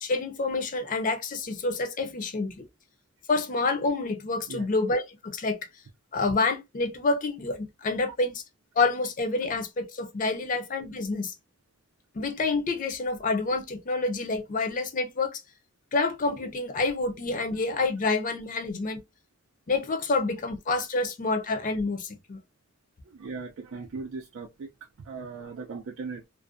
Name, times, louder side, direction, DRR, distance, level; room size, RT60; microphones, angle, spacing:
voice 1, 0.0-2.7 3.3-5.6 6.1-8.4 8.8-11.3 12.1-15.4 15.9-19.0 19.7-22.4, left 3 dB, 40° left, 0.5 m, -28 dB
voice 2, 23.1-24.7 25.0-26.3, right 4 dB, 65° right, 0.4 m, -38 dB
2.5 x 2.1 x 2.4 m
head